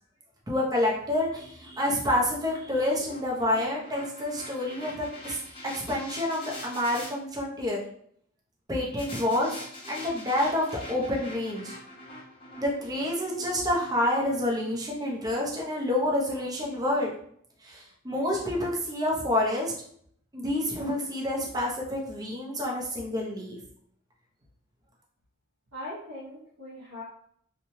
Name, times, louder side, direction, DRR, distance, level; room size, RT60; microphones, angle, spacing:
voice 1, 0.5-5.4 5.7-7.8 8.7-9.6 9.9-11.8 12.6-17.1 17.6-19.7 20.3-23.6, left 1 dB, 20° right, -2 dB, 0.6 m, -28 dB
sound 1, 0.9-7.1 9.0-15.2, left 1 dB, 25° left, 0.7 m, -45 dB
voice 2, 25.7-27.0, left 1 dB, 90° right, -7 dB, 0.9 m, -40 dB
3.0 x 2.2 x 2.7 m, 0.64 s
head